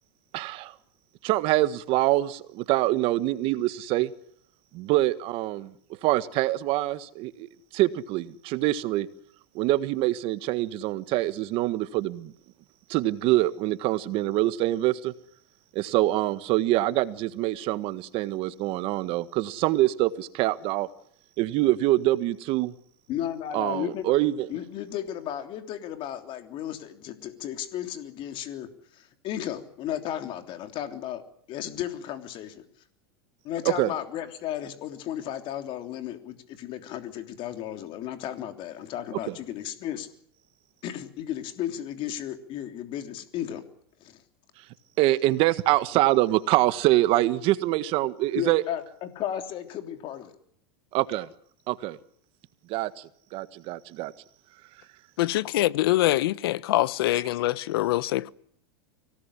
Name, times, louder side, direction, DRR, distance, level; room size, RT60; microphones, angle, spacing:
voice 1, 0.3-0.7 1.2-4.1 4.7-5.7 6.0-9.1 9.5-12.3 12.9-15.1 15.7-20.9 21.4-22.7 23.5-24.5 33.6-33.9 39.3-39.4 45.0-48.6 50.9-51.3 51.7-52.0 52.7-54.1, right 16 dB, 45° right, 1.6 m, -25 dB
voice 2, 23.1-24.1 24.5-28.7 28.9-31.2 31.5-32.6 33.4-40.1 40.8-43.6 44.0-44.2 48.3-50.3, left 11 dB, 40° left, 3.2 m, -34 dB
voice 3, 55.2-58.3, left 16 dB, 75° left, 1.1 m, -24 dB
25.0 x 18.0 x 10.0 m
supercardioid pair, 135°, 13 cm